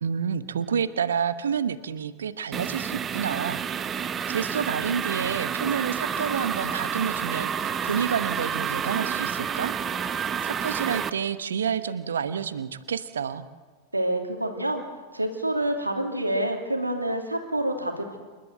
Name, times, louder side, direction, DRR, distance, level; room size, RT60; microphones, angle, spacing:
voice 1, 0.0-4.0 4.3-9.7 10.4-13.5, right 7 dB, 65° right, 13 dB, 1.0 m, -29 dB
sound 1, 2.5-11.1, right 7 dB, 25° right, 0.9 m, -29 dB
voice 2, 13.9-14.8 15.1-18.2, right 1 dB, 85° right, 4 dB, 2.6 m, -27 dB
28.0 x 12.0 x 8.0 m, 1.4 s
figure-of-eight pair, 90°, 0 cm